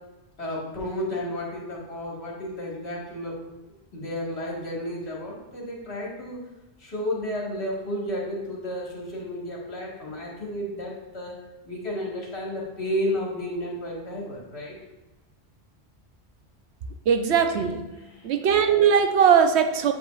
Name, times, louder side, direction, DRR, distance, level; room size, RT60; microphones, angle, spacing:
voice 1, 0.4-3.3 3.9-6.4 6.8-11.3 11.7-14.7, equal, 70° left, -4 dB, 1.9 m, -32 dB
voice 2, 17.1-17.9 18.2-19.9, right 7 dB, 75° right, 7 dB, 0.9 m, -20 dB
8.5 x 5.0 x 2.4 m, 1.1 s
omnidirectional pair, 1.1 m